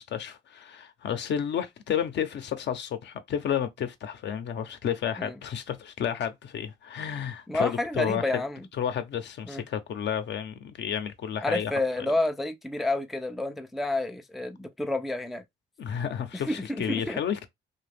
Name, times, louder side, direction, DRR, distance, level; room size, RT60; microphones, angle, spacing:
voice 1, 0.0-8.4 8.8-11.7 15.8-17.5, left 8 dB, 60° left, 0.6 m, -31 dB
voice 2, 7.5-8.6 9.5-9.6 11.4-15.4 16.3-17.2, left 2 dB, ahead, 0.3 m, -29 dB
2.7 x 2.3 x 3.4 m
cardioid pair, 90°, 20 cm